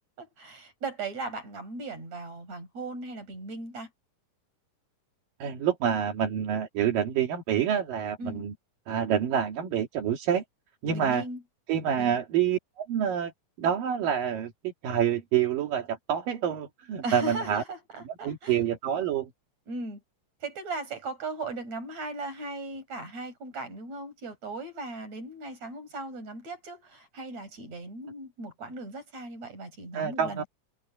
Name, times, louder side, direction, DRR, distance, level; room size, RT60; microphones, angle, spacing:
voice 1, 0.4-3.9 8.2-8.5 10.9-11.4 12.0-12.2 17.0-18.6 19.7-20.0 20.4-30.5, right 2 dB, 50° right, 7.3 m, -38 dB
voice 2, 5.4-8.5 8.9-10.4 10.8-11.2 11.7-13.3 13.6-17.6 18.2-19.3 29.9-30.4, right 9 dB, 80° right, 3.9 m, -27 dB
omnidirectional pair, 3.9 m